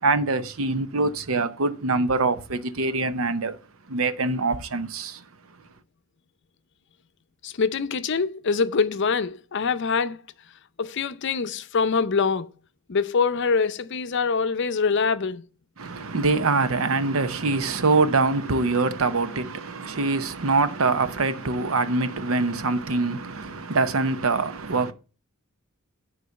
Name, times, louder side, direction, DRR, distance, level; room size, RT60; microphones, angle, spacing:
voice 1, 0.0-3.6 3.9-5.6 15.8-24.9, right 3 dB, 85° right, 0.8 m, -24 dB
voice 2, 7.4-10.2 10.8-12.5 12.9-15.5, left 5 dB, 60° left, 0.6 m, -24 dB
9.2 x 4.0 x 6.9 m
head